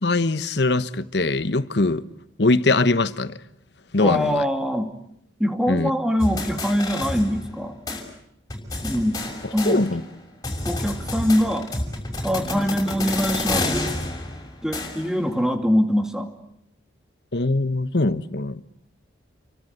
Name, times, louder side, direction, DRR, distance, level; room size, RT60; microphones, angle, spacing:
voice 1, 0.0-2.0 2.4-3.4 3.9-4.4 5.7-5.9 9.6-10.0 17.3-18.6, left 2 dB, 60° left, 1.2 m, -22 dB
voice 2, 4.0-4.9 5.4-7.7 8.8-9.2 9.5-9.8 10.6-11.7 12.2-14.0 14.6-16.3, equal, 5° right, 2.4 m, -23 dB
sound 1, 6.2-7.6 7.9-8.0 8.5-10.1 10.4-15.2, left 2 dB, 20° left, 6.2 m, -29 dB
30.0 x 23.5 x 8.1 m
head